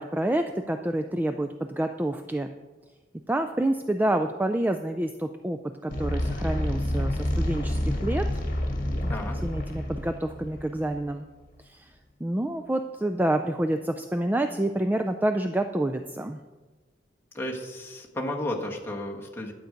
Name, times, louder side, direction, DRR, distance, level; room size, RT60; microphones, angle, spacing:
voice 1, 0.0-2.5 3.3-8.2 9.0-9.1 9.4-11.2 11.6-11.9 12.2-16.4, right 1 dB, 10° right, 6 dB, 0.4 m, -28 dB
sound 1, 5.9-11.1, left 1 dB, 50° left, 1.7 m, -29 dB
voice 2, 17.3-19.5, left 1 dB, 15° left, -1 dB, 1.5 m, -33 dB
11.5 x 8.0 x 5.1 m, 1.2 s
head